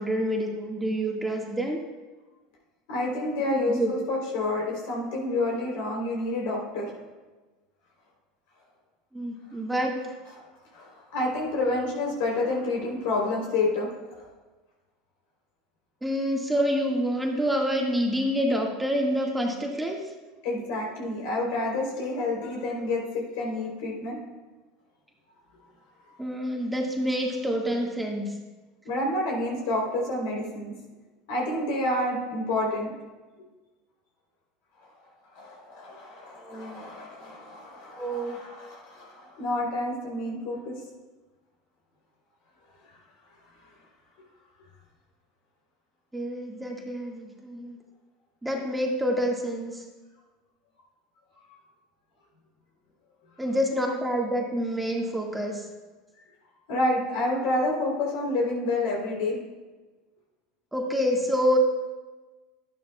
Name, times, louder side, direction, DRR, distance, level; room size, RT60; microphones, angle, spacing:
voice 1, 0.0-1.8 3.5-3.9 9.1-9.9 16.0-20.1 26.2-28.3 36.4-36.8 38.0-38.4 46.1-47.8 48.4-49.8 53.4-55.7 60.7-61.6, equal, 10° right, 0 dB, 1.7 m, -27 dB
voice 2, 2.9-6.9 10.4-10.5 10.7-14.3 20.4-24.2 28.8-30.7 31.3-32.9 35.3-40.8 51.5-51.6 56.7-59.4, left 2 dB, 70° left, -2 dB, 3.4 m, -29 dB
12.0 x 11.0 x 2.3 m, 1.2 s
hypercardioid pair, 80°, 0 cm